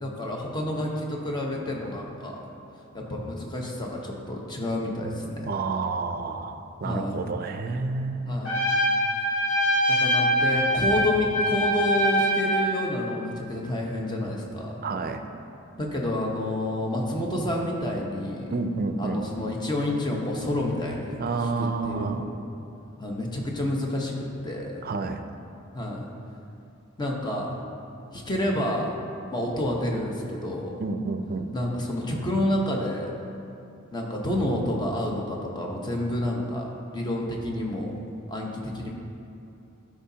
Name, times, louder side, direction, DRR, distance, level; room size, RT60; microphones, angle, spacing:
voice 1, 0.0-2.4 2.9-5.5 6.8-7.3 8.3-8.6 9.9-14.8 15.8-18.5 19.0-21.2 21.6-22.4 23.0-24.8 25.7-26.0 27.0-27.6 28.1-29.0 29.3-30.8 31.5-33.1 33.9-36.7 36.9-38.0 38.3-38.9, left 1 dB, 20° left, -1 dB, 0.9 m, -29 dB
voice 2, 5.5-8.4 14.8-15.2 18.5-19.2 21.2-22.3 24.8-25.2 30.8-31.5, right 4 dB, 45° right, 7 dB, 0.4 m, -29 dB
Trumpet, 8.4-12.7, equal, 65° left, 1.4 m, -24 dB
12.0 x 5.0 x 2.8 m, 2.7 s
head